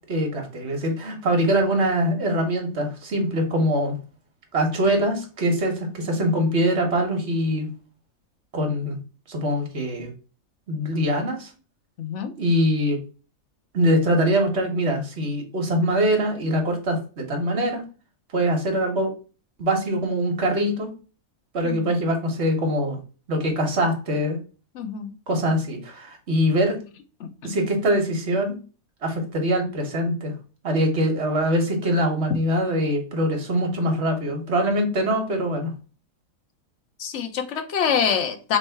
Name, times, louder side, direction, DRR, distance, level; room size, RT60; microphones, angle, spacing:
voice 1, 0.1-4.0 4.5-7.7 8.5-9.0 9.3-10.1 10.7-11.5 12.4-13.0 13.7-17.8 18.3-19.1 19.6-20.9 21.5-23.0 23.3-24.4 25.3-26.8 27.4-28.5 29.0-30.3 30.6-35.7, equal, 50° right, 3 dB, 1.3 m, -23 dB
voice 2, 12.0-12.3 21.6-21.9 24.7-25.1 27.2-27.6 37.0-38.6, left 7 dB, 60° left, 7 dB, 1.0 m, -26 dB
3.3 x 3.2 x 4.4 m, 0.35 s
omnidirectional pair, 1.5 m